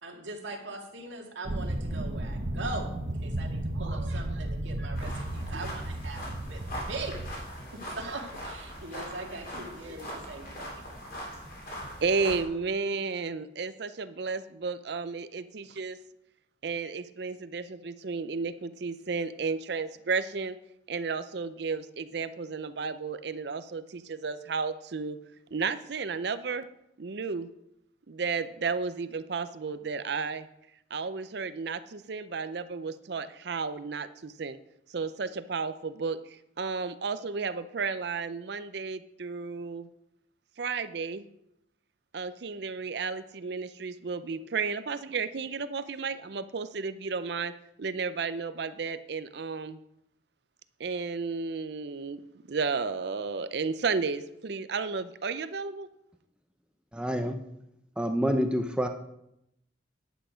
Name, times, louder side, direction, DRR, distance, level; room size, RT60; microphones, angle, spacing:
voice 1, 0.0-7.1 7.7-10.8, right 2 dB, 75° right, 2 dB, 2.0 m, -41 dB
sound 1, 1.5-7.4, right 1 dB, 40° right, 0.9 m, -34 dB
sound 2, 4.9-12.4, equal, 50° left, 2.9 m, -41 dB
voice 2, 12.0-16.0 16.6-20.6 20.9-25.2 25.5-26.7 27.0-27.5 28.1-30.5 30.9-34.6 34.9-39.9 40.6-41.2 42.1-47.5 47.8-49.8 50.8-52.2 52.5-55.9, right 4 dB, 60° right, 13 dB, 0.5 m, -33 dB
voice 3, 56.9-57.4 58.0-58.9, equal, 5° right, 6 dB, 0.6 m, -27 dB
10.0 x 8.2 x 5.0 m, 0.81 s
head